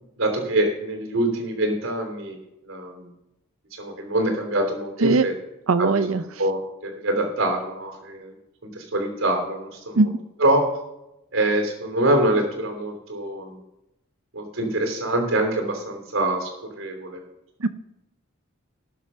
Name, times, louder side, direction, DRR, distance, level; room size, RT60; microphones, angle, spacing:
voice 1, 0.2-2.4 2.6-3.1 3.7-5.3 5.8-8.3 8.6-10.1 10.4-10.6 11.3-13.6 14.3-16.5 16.8-17.2, right 1 dB, 70° right, 2 dB, 3.0 m, -25 dB
voice 2, 5.7-6.2 10.0-10.1 17.6-17.7, right 3 dB, 90° right, 12 dB, 0.7 m, -19 dB
18.0 x 6.3 x 5.5 m, 0.91 s
head